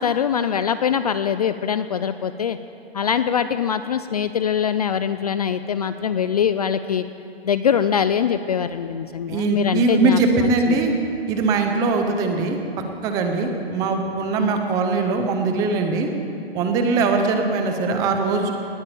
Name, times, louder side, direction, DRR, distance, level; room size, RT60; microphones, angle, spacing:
voice 1, 0.0-2.6 2.9-7.0 7.4-10.8, left 8 dB, 40° left, 11 dB, 0.4 m, -23 dB
voice 2, 9.3-10.9 11.3-12.6 13.0-16.1 16.5-18.5, right 3 dB, 10° right, 5 dB, 0.6 m, -21 dB
19.0 x 8.4 x 8.6 m, 2.8 s
hypercardioid pair, 165°, 32 cm